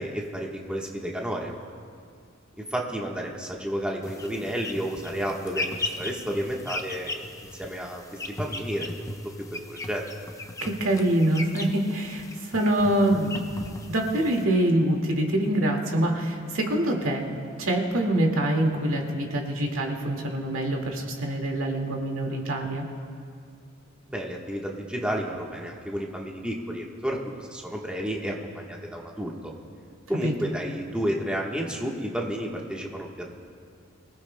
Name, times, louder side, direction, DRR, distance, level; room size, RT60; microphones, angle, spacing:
voice 1, 0.0-1.5 2.6-7.2 7.6-8.0 8.3-9.0 9.7-10.0 24.1-29.5 30.1-33.1, equal, 5° right, -2 dB, 1.2 m, -31 dB
sound 1, 4.0-14.4, left 2 dB, 15° left, 0.8 m, -37 dB
voice 2, 10.6-13.4 13.9-17.3 17.6-22.8 30.2-30.3, right 1 dB, 85° right, 1 dB, 2.0 m, -25 dB
25.0 x 17.0 x 2.2 m, 2.2 s
head